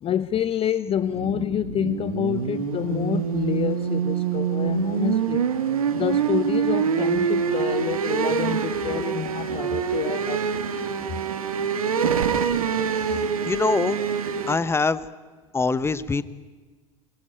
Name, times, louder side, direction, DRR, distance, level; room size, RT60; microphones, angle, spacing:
voice 1, 0.0-5.4 5.9-10.7, left 10 dB, 30° left, 0.7 m, -28 dB
sound 1, 0.9-14.6, right 7 dB, 80° right, 2.0 m, -25 dB
voice 2, 13.5-14.0 14.5-15.0 15.5-16.2, left 4 dB, 15° left, 1.2 m, -23 dB
25.0 x 23.0 x 9.1 m
figure-of-eight pair, 75°, 18 cm